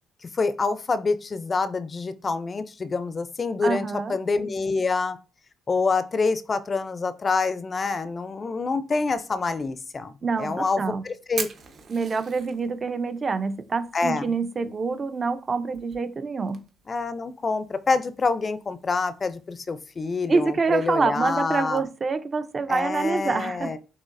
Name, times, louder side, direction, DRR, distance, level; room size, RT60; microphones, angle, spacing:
voice 1, 0.3-5.2 5.7-10.1 10.4-11.5 13.9-14.3 16.9-21.8 22.7-23.8, left 4 dB, 35° left, 0.4 m, -26 dB
voice 2, 3.6-4.2 10.2-11.0 11.9-16.6 20.3-23.8, right 4 dB, 35° right, 0.5 m, -26 dB
Fire, 10.3-21.8, right 6 dB, 60° right, 0.9 m, -45 dB
6.3 x 2.8 x 2.5 m
cardioid pair, 90°, 0 cm